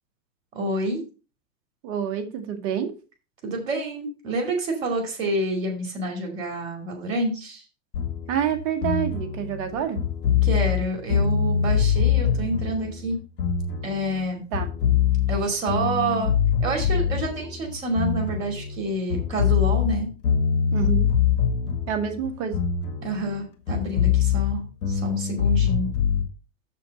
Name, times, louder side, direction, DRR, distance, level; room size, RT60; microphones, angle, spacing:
voice 1, 0.5-1.0 3.4-7.6 10.4-13.2 13.8-14.4 15.3-16.3 16.6-20.1 23.0-25.9, right 1 dB, 90° right, 1 dB, 2.7 m, -28 dB
voice 2, 1.8-2.9 8.3-10.0 14.5-14.7 20.7-21.1 21.9-22.6, right 8 dB, 60° right, 6 dB, 2.1 m, -27 dB
sound 1, 7.9-14.2 14.5-18.8 19.1-23.4 23.7-26.2, left 8 dB, 80° left, 1.9 m, -24 dB
7.3 x 6.8 x 4.2 m, 0.33 s
hypercardioid pair, 95°, 38 cm